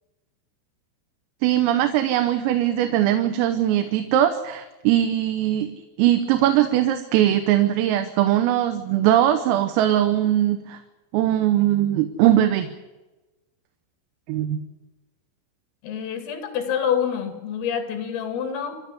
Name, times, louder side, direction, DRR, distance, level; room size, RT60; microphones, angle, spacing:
voice 1, 1.4-10.8 11.1-12.7 14.3-14.6, right 12 dB, 85° right, 7 dB, 3.7 m, -20 dB
voice 2, 15.8-18.8, left 8 dB, 80° left, 8 dB, 4.9 m, -27 dB
28.5 x 11.0 x 9.8 m, 1.1 s
omnidirectional pair, 5.9 m